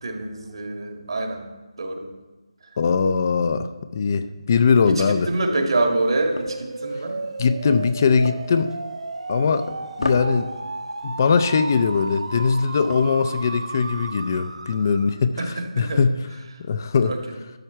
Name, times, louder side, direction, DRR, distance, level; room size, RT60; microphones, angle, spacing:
voice 1, 0.0-1.4 1.8-2.1 4.8-7.2 15.4-16.0 17.0-17.2, right 2 dB, 60° right, 3 dB, 1.8 m, -26 dB
voice 2, 2.8-5.3 7.4-8.8 9.3-9.7 10.0-10.5 11.0-16.1 16.6-17.1, left 5 dB, 35° left, 11 dB, 0.4 m, -21 dB
sound 1, 4.9-14.2, left 2 dB, 80° left, 1.3 m, -38 dB
sound 2, 5.4-15.3, right 2 dB, 80° right, 0.7 m, -33 dB
12.0 x 7.1 x 4.5 m, 1.2 s
figure-of-eight pair, 165°, 3 cm